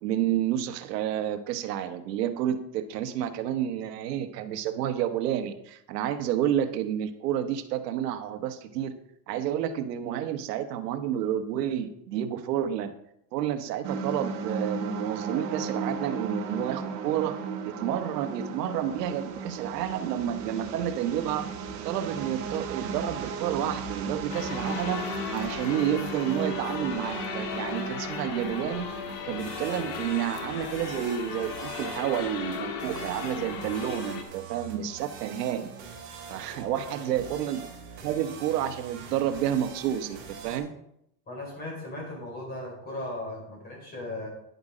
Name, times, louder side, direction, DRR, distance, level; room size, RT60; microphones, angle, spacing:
voice 1, 0.0-8.9 9.3-12.9 13.3-17.4 17.6-21.5 21.8-28.9 29.2-35.7 36.3-37.7 38.0-40.7, right 10 dB, 80° right, 9 dB, 1.2 m, -30 dB
sound 1, 13.8-29.1, right 4 dB, 45° right, 2.0 m, -35 dB
sound 2, 24.3-34.2, left 6 dB, 80° left, 2.0 m, -36 dB
sound 3, 29.4-40.6, right 6 dB, 25° right, 3.0 m, -44 dB
voice 2, 36.7-37.2 41.3-44.3, left 1 dB, 20° left, -2 dB, 4.6 m, -37 dB
10.5 x 8.0 x 5.0 m, 0.78 s
supercardioid pair, 170°, 48 cm